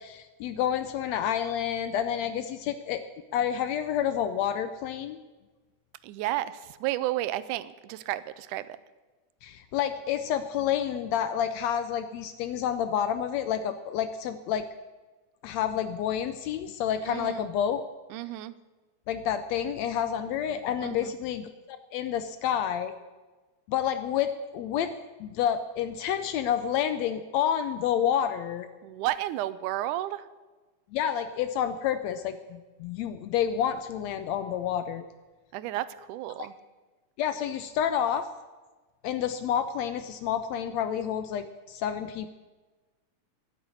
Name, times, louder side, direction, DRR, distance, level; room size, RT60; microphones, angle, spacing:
voice 1, 0.0-3.0 3.3-5.2 9.4-14.7 15.4-17.8 19.1-22.9 23.7-24.9 25.2-28.7 30.9-35.0 36.4-36.5 37.2-38.3 39.0-42.3, left 9 dB, 75° left, 10 dB, 1.6 m, -29 dB
voice 2, 6.0-8.7 17.1-17.5 18.1-18.5 20.8-21.1 28.8-30.3 35.5-36.5, right 15 dB, 85° right, 16 dB, 2.1 m, -32 dB
11.5 x 9.5 x 8.2 m, 1.2 s
omnidirectional pair, 3.5 m